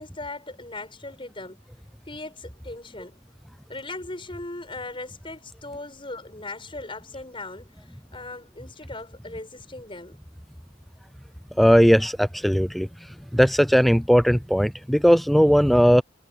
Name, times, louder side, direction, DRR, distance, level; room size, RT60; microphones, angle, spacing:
voice 1, 0.0-1.6 2.1-3.2 3.7-7.8 8.1-10.2, left 2 dB, 25° left, 7.5 m, -38 dB
voice 2, 11.6-12.9 13.3-16.0, equal, ahead, 0.6 m, -18 dB
head